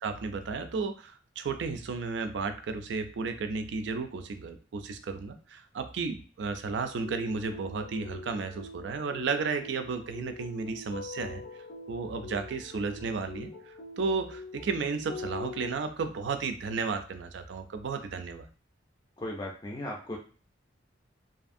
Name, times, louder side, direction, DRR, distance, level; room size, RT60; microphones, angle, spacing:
voice 1, 0.0-11.4 11.9-18.5, right 4 dB, 65° right, 8 dB, 0.4 m, -33 dB
sound 1, 6.7-15.8, left 3 dB, 85° left, 0.5 m, -44 dB
voice 2, 19.2-20.2, left 1 dB, 20° left, -1 dB, 0.4 m, -36 dB
2.6 x 2.5 x 2.5 m, 0.40 s
head